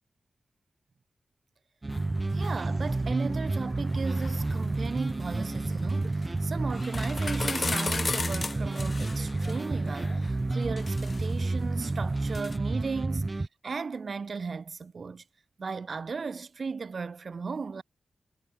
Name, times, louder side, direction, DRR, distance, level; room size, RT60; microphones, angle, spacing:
sound 1, 1.8-13.5, right 2 dB, 25° right, 0.5 m, -30 dB
sound 2, 1.9-12.6, left 3 dB, 35° left, 2.3 m, -38 dB
voice 1, 2.3-15.2 15.6-17.8, right 5 dB, 45° right, 2.6 m, -36 dB
wide cardioid pair, 155°, 0 cm